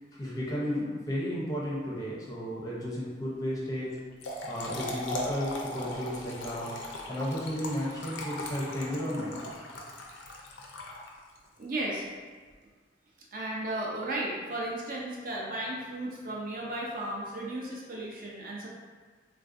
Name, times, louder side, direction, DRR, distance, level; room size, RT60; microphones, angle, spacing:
voice 1, 0.1-3.9 4.4-6.7 7.1-9.4 13.6-13.8, equal, 20° left, -6 dB, 0.5 m, -33 dB
Trickle dribble / Fill (with liquid), 4.0-11.4, left 1 dB, 80° left, 0.5 m, -38 dB
voice 2, 11.6-12.1 13.3-18.7, right 1 dB, 50° right, -4 dB, 0.5 m, -35 dB
3.3 x 2.4 x 2.5 m, 1.5 s
head